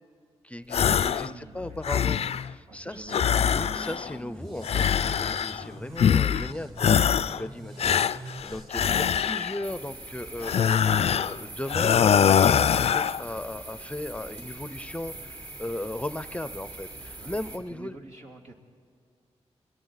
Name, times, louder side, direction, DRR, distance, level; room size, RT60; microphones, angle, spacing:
voice 1, 0.4-18.0, left 1 dB, 10° left, 13 dB, 0.6 m, -37 dB
sound 1, 0.7-1.3 1.6-2.5 3.1-4.1 4.6-5.6 6.0-6.5 6.8-7.4 7.8-9.6 10.4-11.4 11.7-13.2, left 8 dB, 65° left, 0.4 m, -23 dB
voice 2, 1.0-3.5 17.2-17.3 17.7-18.5, right 2 dB, 85° right, -1 dB, 2.6 m, -47 dB
sound 2, 3.2-8.7, right 1 dB, 45° right, 3.4 m, -44 dB
sound 3, 9.6-17.6, right 2 dB, 70° right, 3.8 m, -42 dB
30.0 x 21.5 x 4.1 m, 2.3 s
cardioid pair, 65°, 11 cm